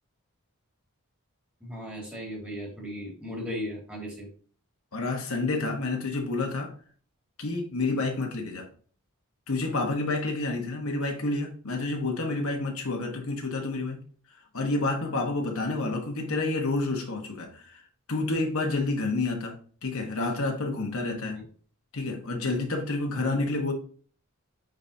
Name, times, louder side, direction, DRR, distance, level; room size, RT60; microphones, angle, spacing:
voice 1, 1.6-4.3 21.3-21.4, equal, 5° right, 2.2 m, -36 dB
voice 2, 4.9-6.7 7.4-8.7 9.5-14.0 14.5-17.8 18.1-19.5 19.8-21.4 21.9-23.7, left 2 dB, 65° left, 1.2 m, -29 dB
9.1 x 4.0 x 2.7 m
head